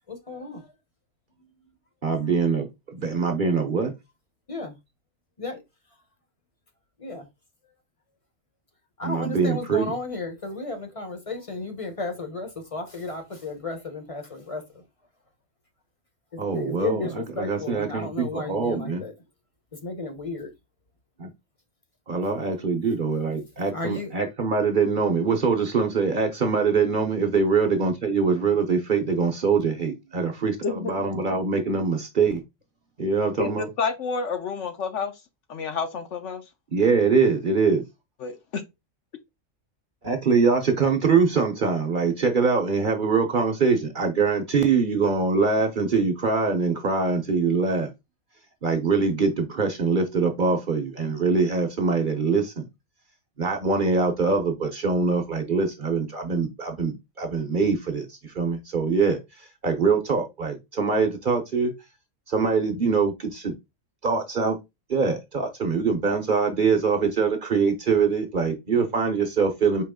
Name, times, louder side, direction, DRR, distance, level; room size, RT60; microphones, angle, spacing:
voice 1, 0.1-0.7 4.5-4.7 5.4-5.6 7.0-7.3 9.0-14.8 16.3-19.1 19.7-20.5 23.7-24.1, left 3 dB, 30° left, 0.8 m, -33 dB
voice 2, 2.0-3.9 9.0-9.9 16.4-19.0 21.2-21.3 22.1-32.4 33.0-33.7 36.7-37.8 40.0-47.9 48.6-52.7 53.4-59.2 59.6-61.7 62.3-63.5 64.0-64.6 64.9-69.8, right 5 dB, 45° right, 0.9 m, -23 dB
voice 3, 33.4-35.1 35.5-36.4 38.2-38.6, left 5 dB, 70° left, 1.1 m, -29 dB
4.8 x 3.1 x 3.6 m
omnidirectional pair, 1.4 m